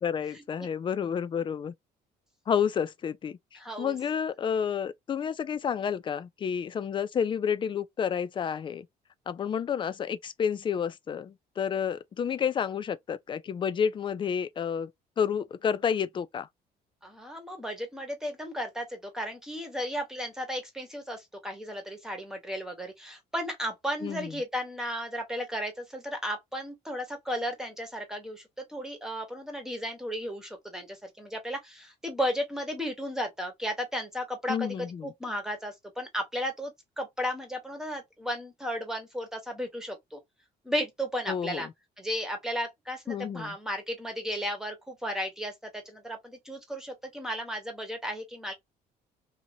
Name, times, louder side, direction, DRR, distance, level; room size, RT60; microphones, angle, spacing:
voice 1, 0.0-1.7 2.5-8.9 9.3-14.9 15.2-16.5 24.0-24.4 34.5-35.1 41.3-41.7 43.1-43.6, left 7 dB, 30° left, 0.4 m, -30 dB
voice 2, 3.5-3.9 17.0-28.4 28.7-40.2 40.6-41.7 42.0-48.5, equal, 5° right, 1.2 m, -34 dB
2.8 x 2.6 x 2.7 m
cardioid pair, 110°, 17 cm